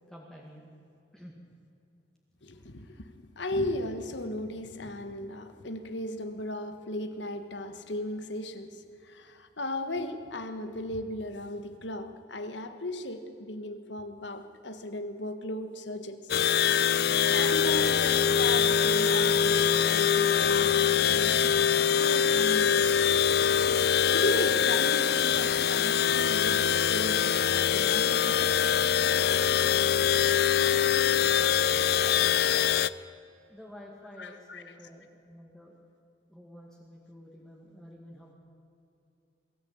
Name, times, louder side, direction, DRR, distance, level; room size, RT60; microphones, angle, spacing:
voice 1, 0.1-0.7 1.1-1.3 32.0-32.4 33.5-35.7 36.3-38.3, left 1 dB, 5° left, -2 dB, 2.1 m, -49 dB
voice 2, 2.4-16.3 17.2-23.1 23.6-28.6 32.5-33.1 34.2-34.8, left 1 dB, 75° left, 9 dB, 1.5 m, -36 dB
sound 1, 16.3-32.9, left 8 dB, 55° left, 0.4 m, -24 dB
22.0 x 14.0 x 8.7 m, 2.6 s
head